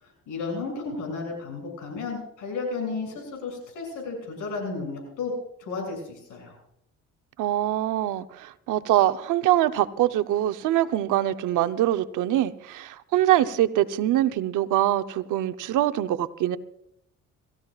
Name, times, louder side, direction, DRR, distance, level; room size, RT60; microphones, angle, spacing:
voice 1, 0.0-5.3 5.6-6.5, left 4 dB, 90° left, 6.8 m, -33 dB
voice 2, 7.4-16.6, right 13 dB, 85° right, 0.8 m, -24 dB
27.0 x 14.5 x 2.4 m
cardioid pair, 90°, 30 cm